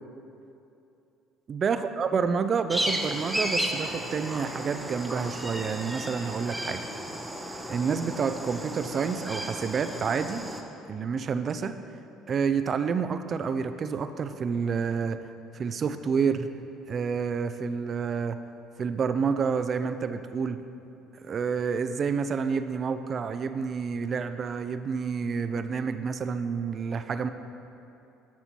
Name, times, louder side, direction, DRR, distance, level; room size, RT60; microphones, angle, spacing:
voice 1, 1.5-6.8 7.7-10.5 10.9-11.8 12.3-15.2 15.5-16.5 16.9-18.4 18.8-20.6 21.2-27.3, right 6 dB, 40° right, 10 dB, 0.4 m, -29 dB
sound 1, 2.7-10.6, right 1 dB, 5° right, 0.7 m, -33 dB
13.0 x 4.4 x 4.4 m, 2.7 s
supercardioid pair, 100°, 0 cm